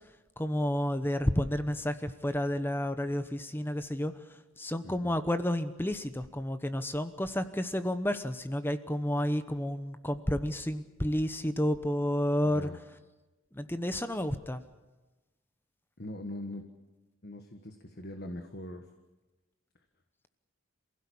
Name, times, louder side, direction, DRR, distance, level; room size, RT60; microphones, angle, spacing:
voice 1, 0.4-4.1 4.6-12.7 13.5-14.6, left 1 dB, 10° left, 10 dB, 1.0 m, -31 dB
voice 2, 4.8-5.1 12.4-12.8 16.0-16.6 17.2-18.8, left 1 dB, 50° left, 6 dB, 1.5 m, -41 dB
27.5 x 16.5 x 8.6 m, 1.1 s
head